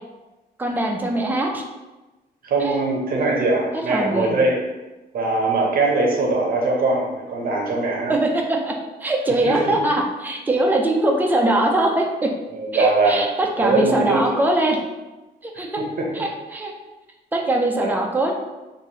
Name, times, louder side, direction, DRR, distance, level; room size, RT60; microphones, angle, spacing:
voice 1, 0.6-1.6 2.6-2.7 3.9-4.4 8.1-8.8 9.0-12.3 12.7-14.8 15.4-15.8 16.1-16.7 17.3-18.3, right 1 dB, 10° right, 1 dB, 0.3 m, -21 dB
voice 2, 2.4-4.6 5.1-8.1 9.4-9.7 12.5-13.2 13.6-14.2 16.0-16.1 17.8-17.9, right 3 dB, 60° right, -1 dB, 0.7 m, -21 dB
3.3 x 2.6 x 2.8 m, 1.1 s
wide cardioid pair, 170°, 17 cm